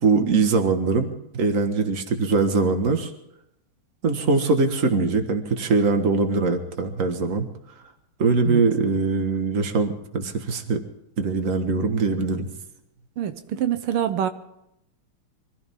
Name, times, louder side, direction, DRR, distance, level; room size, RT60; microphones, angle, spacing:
voice 1, 0.0-3.1 4.0-7.5 8.2-10.8 11.2-12.5, right 4 dB, 40° right, 6 dB, 1.8 m, -22 dB
voice 2, 13.2-14.3, right 10 dB, 85° right, 9 dB, 1.8 m, -25 dB
24.5 x 15.5 x 3.7 m, 0.82 s
omnidirectional pair, 2.3 m